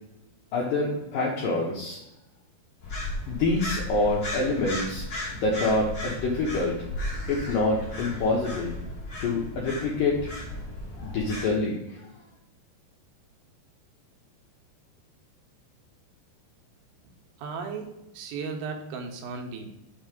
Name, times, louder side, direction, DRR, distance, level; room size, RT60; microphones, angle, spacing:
voice 1, 0.5-2.0 3.3-5.1 5.4-6.9 7.3-8.7 9.2-10.3 11.0-12.1, left 2 dB, 80° left, -4 dB, 2.0 m, -26 dB
sound 1, 2.8-11.5, left 1 dB, 50° left, 1.3 m, -35 dB
voice 2, 17.4-19.8, right 5 dB, 80° right, 3 dB, 3.0 m, -36 dB
6.5 x 3.1 x 5.0 m, 0.89 s
omnidirectional pair, 5.1 m